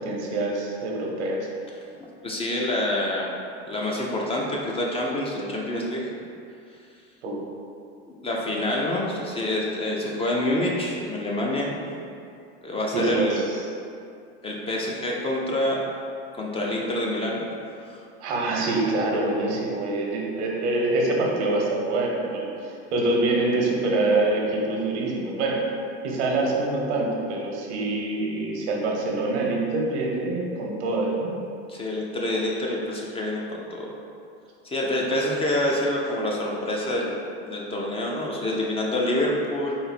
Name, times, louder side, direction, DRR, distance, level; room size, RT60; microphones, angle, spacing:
voice 1, 0.0-1.4 7.2-7.4 12.9-13.7 18.2-25.6 26.0-31.4, right 2 dB, 85° right, -1 dB, 0.8 m, -25 dB
voice 2, 2.2-3.3 3.7-6.0 8.2-11.9 12.6-13.5 14.4-15.8 16.4-17.4 17.9-18.0 31.7-33.4 33.7-33.9 34.6-39.7, left 1 dB, 15° left, -2 dB, 0.4 m, -27 dB
4.0 x 2.0 x 4.1 m, 2.5 s
supercardioid pair, 110°, 34 cm